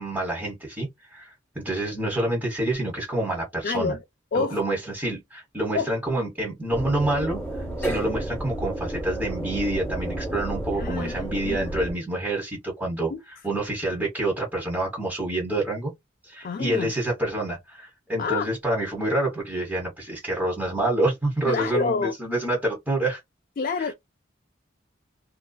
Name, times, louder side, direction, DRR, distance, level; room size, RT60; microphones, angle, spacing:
voice 1, 0.0-3.9 4.3-7.4 7.8-13.1 13.4-15.9 16.2-23.2 23.8-23.9, right 1 dB, 10° right, 1.1 m, -27 dB
voice 2, 3.6-4.0 4.3-4.6 5.7-5.9 10.8-11.7 13.1-13.2 16.4-16.9 18.2-18.5 21.5-22.1 23.6-23.9, left 4 dB, 45° left, 0.3 m, -28 dB
sound 1, 6.7-11.9, right 1 dB, 10° left, 1.2 m, -31 dB
2.6 x 2.2 x 2.2 m
head